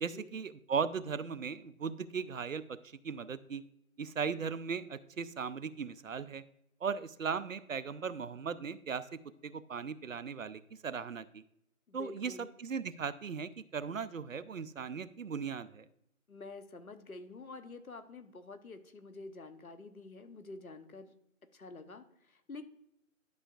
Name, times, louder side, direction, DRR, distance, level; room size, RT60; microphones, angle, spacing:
voice 1, 0.0-2.8 3.0-3.6 4.0-6.4 6.8-9.1 9.4-11.4 11.9-12.3 12.6-15.9, right 6 dB, 70° right, 14 dB, 0.6 m, -37 dB
voice 2, 11.9-12.5 16.3-21.1 21.5-22.6, left 3 dB, 80° left, 10 dB, 1.1 m, -48 dB
11.5 x 5.6 x 2.4 m, 0.79 s
figure-of-eight pair, 165°, 42 cm